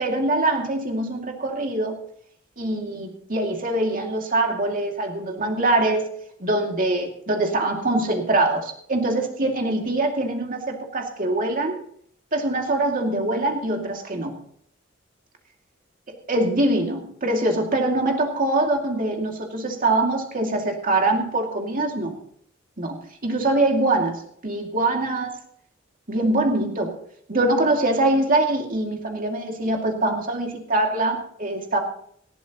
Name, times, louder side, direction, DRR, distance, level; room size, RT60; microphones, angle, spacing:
voice 1, 0.0-2.0 2.6-6.1 6.4-11.8 12.3-14.4 16.1-22.2 22.8-25.4 26.1-27.0 27.3-31.8, right 2 dB, 45° right, 2 dB, 2.4 m, -23 dB
18.5 x 14.0 x 3.0 m, 0.64 s
head